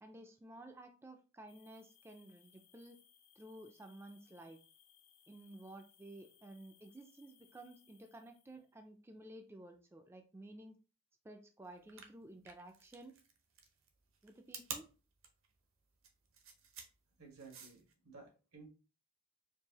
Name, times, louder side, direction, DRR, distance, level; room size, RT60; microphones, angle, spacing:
voice 1, 0.0-3.0 3.4-4.6 5.3-10.8 11.2-13.1 14.2-14.9, right 1 dB, 10° right, 5 dB, 0.3 m, -54 dB
sound 1, 1.5-8.7, left 9 dB, 65° left, 1.0 m, -68 dB
sound 2, 11.8-17.9, right 6 dB, 65° right, 0.7 m, -50 dB
voice 2, 17.2-18.7, right 4 dB, 90° right, 0 dB, 1.7 m, -56 dB
4.6 x 2.6 x 2.8 m, 0.34 s
head